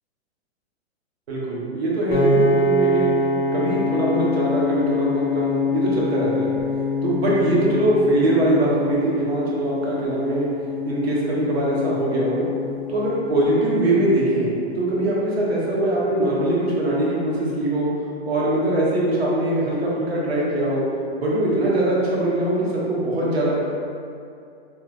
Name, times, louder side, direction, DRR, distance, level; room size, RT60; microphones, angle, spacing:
voice 1, 1.3-3.1 3.5-6.5 7.0-10.5 10.8-12.5 12.9-17.9 18.3-20.8 21.2-23.6, right 1 dB, 65° right, -5 dB, 1.0 m, -22 dB
Piano, 2.1-14.4, left 2 dB, 55° left, 0.7 m, -25 dB
3.3 x 2.0 x 3.2 m, 2.5 s
hypercardioid pair, 155°, 33 cm